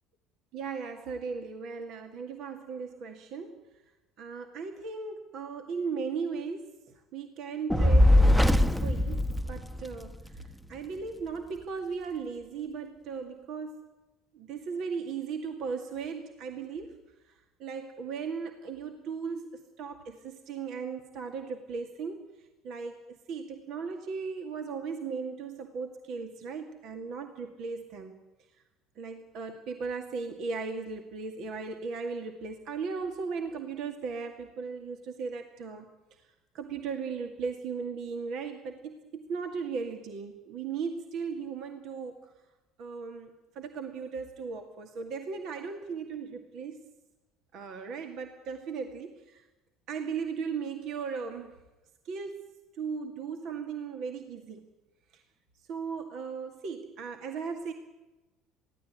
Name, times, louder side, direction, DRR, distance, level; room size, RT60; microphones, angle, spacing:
voice 1, 0.5-3.6 4.2-6.7 7.1-9.2 9.5-10.2 10.7-13.9 14.3-17.0 17.6-22.3 22.6-28.2 29.0-35.9 36.5-42.2 42.8-46.8 47.5-49.4 49.9-51.5 52.1-52.4 52.8-54.6 55.1-55.2 55.7-57.7, right 5 dB, 55° right, 5 dB, 2.1 m, -37 dB
Fire, 7.7-10.2, left 1 dB, 5° right, 1.2 m, -21 dB
23.0 x 16.5 x 9.3 m, 1.1 s
hypercardioid pair, 65°, 0 cm